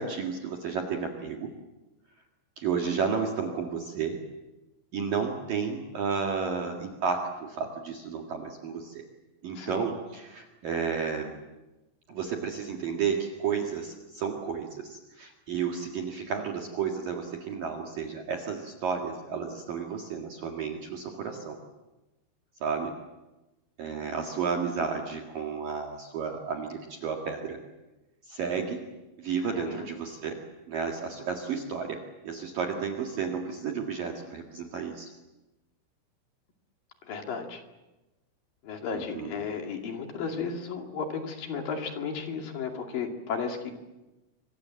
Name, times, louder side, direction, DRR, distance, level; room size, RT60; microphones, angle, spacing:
voice 1, 0.0-1.5 2.6-4.2 4.9-9.0 9.4-11.4 12.1-21.6 22.6-23.0 23.8-27.6 28.2-28.8 29.2-30.4 30.7-35.1 38.9-39.3, right 6 dB, 55° right, 1 dB, 3.0 m, -32 dB
voice 2, 9.5-9.9 29.5-29.9 37.1-37.6 38.6-43.7, left 5 dB, 50° left, 3 dB, 3.6 m, -34 dB
27.5 x 25.0 x 7.6 m, 1.1 s
omnidirectional pair, 5.9 m